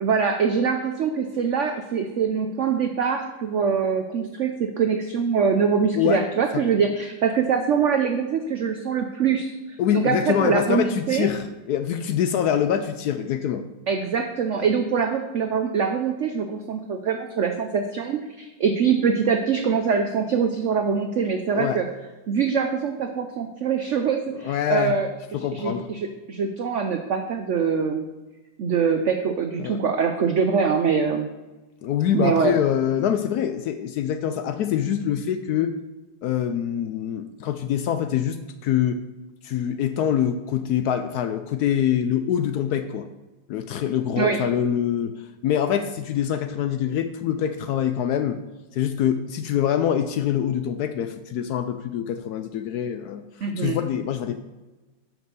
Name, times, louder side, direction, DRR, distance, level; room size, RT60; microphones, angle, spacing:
voice 1, 0.0-11.3 13.9-21.9 22.3-28.0 28.6-31.3 32.1-32.6 44.2-44.4 53.4-53.8, right 6 dB, 85° right, 6 dB, 0.6 m, -24 dB
voice 2, 5.9-6.3 6.5-6.6 9.8-13.6 21.6-21.8 24.4-25.0 25.3-25.9 29.6-29.8 31.8-35.8 36.2-39.0 39.4-43.1 43.5-45.2 45.4-48.4 48.7-53.2 53.6-54.4, left 9 dB, 70° left, 9 dB, 0.9 m, -24 dB
6.2 x 6.0 x 6.7 m, 1.1 s
omnidirectional pair, 2.0 m